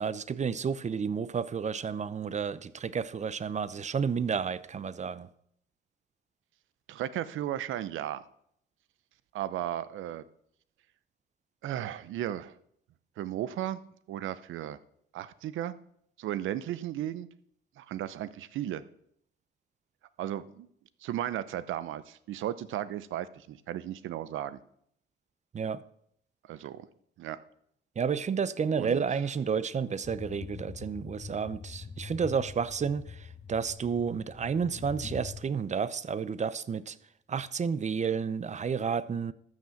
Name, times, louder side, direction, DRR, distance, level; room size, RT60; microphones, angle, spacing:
voice 1, 0.0-5.3 25.5-25.8 28.0-37.0 37.3-39.3, right 6 dB, 35° right, 0.7 m, -31 dB
voice 2, 6.9-8.2 9.3-10.2 11.6-12.5 13.2-13.8 14.1-14.8 15.1-15.7 16.2-17.3 17.8-18.8 20.2-20.7 21.0-24.6 26.5-26.9 27.2-27.4 28.7-29.0, right 12 dB, 80° right, 0.8 m, -35 dB
sound 1, 30.0-35.4, left 5 dB, 30° left, 1.0 m, -44 dB
13.5 x 6.3 x 7.1 m
cardioid pair, 90°, 20 cm